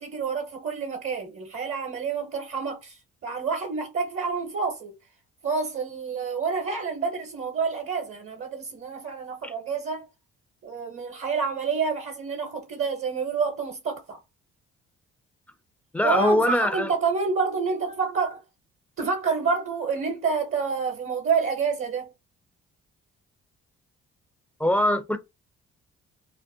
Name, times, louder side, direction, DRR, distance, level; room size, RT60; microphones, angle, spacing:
voice 1, 0.0-5.0 5.4-10.1 10.6-14.2 16.0-18.4 19.0-22.1, right 5 dB, 45° right, 0.7 m, -28 dB
voice 2, 15.9-16.9 24.6-25.2, left 1 dB, 5° left, 0.4 m, -22 dB
2.4 x 2.1 x 2.6 m
supercardioid pair, 65°, 30 cm